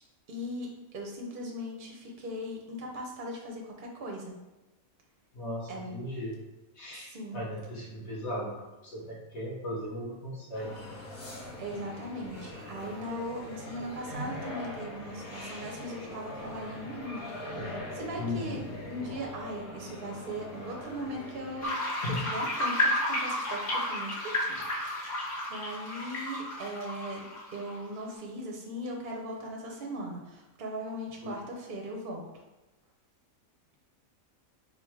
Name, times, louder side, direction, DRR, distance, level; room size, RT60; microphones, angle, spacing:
voice 1, 0.3-4.3 5.7-5.9 6.9-7.4 11.6-17.3 17.5-18.6 18.9-21.8 22.2-24.6 24.8-27.2 27.5-32.3, equal, 50° right, -1 dB, 0.7 m, -39 dB
voice 2, 5.3-6.4 6.7-8.6 8.8-11.0 18.2-18.6 22.0-22.2 24.5-24.6 31.2-31.3, left 1 dB, 55° left, -5 dB, 1.3 m, -37 dB
sound 1, 10.5-21.7, left 1 dB, 80° left, 1.6 m, -41 dB
sound 2, 21.6-28.0, left 1 dB, 35° left, 1.5 m, -32 dB
3.7 x 2.3 x 4.5 m, 1.1 s
omnidirectional pair, 1.5 m